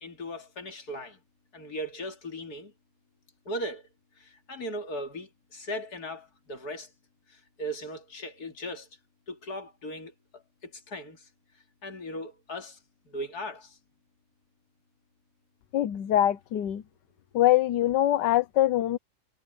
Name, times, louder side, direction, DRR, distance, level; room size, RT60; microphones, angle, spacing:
voice 1, 0.0-1.2 1.5-2.7 3.5-3.8 4.5-6.9 7.6-8.9 9.3-10.1 10.6-11.2 11.8-12.8 13.1-13.7, equal, 60° left, 3.1 m, -37 dB
voice 2, 15.7-16.8 17.3-19.0, left 13 dB, 75° left, 1.4 m, -23 dB
omnidirectional pair, 1.9 m